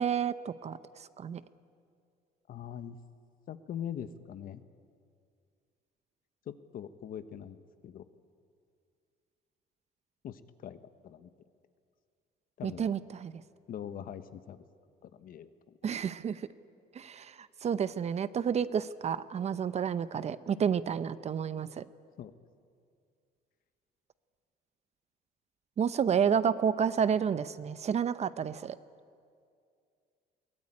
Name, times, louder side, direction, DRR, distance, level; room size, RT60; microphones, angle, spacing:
voice 1, 0.0-1.4 12.6-13.4 15.8-16.5 16.9-21.8 25.8-28.8, right 7 dB, 40° right, 15 dB, 0.7 m, -30 dB
voice 2, 2.5-3.0 3.5-4.6 6.4-8.0 10.2-11.3 12.6-12.9 13.7-14.6 15.0-15.8 22.2-22.3, left 9 dB, 55° left, 12 dB, 1.2 m, -42 dB
22.5 x 17.5 x 9.9 m, 2.3 s
cardioid pair, 110°, 17 cm